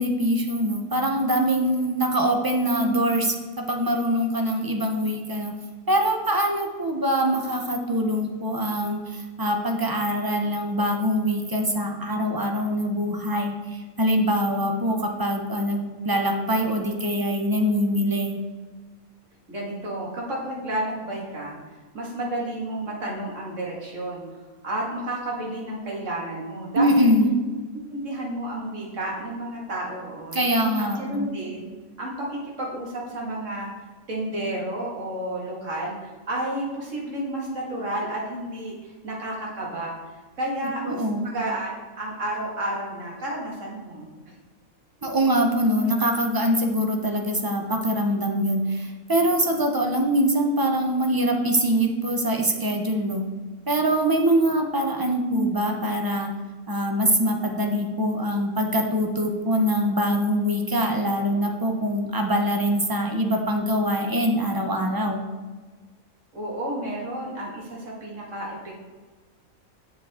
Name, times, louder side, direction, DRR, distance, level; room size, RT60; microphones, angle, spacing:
voice 1, 0.0-5.5 5.9-9.0 9.4-18.4 26.8-27.3 30.3-31.3 40.6-41.3 45.0-53.2 53.7-56.3 56.7-65.2, equal, 25° right, 3 dB, 0.6 m, -23 dB
voice 2, 19.5-21.6 21.9-24.2 24.6-27.1 27.7-30.4 31.0-31.7 32.0-33.7 34.1-40.0 40.4-44.3 66.3-68.8, right 1 dB, 60° right, -3 dB, 2.2 m, -31 dB
7.5 x 7.2 x 3.6 m, 1.3 s
omnidirectional pair, 1.5 m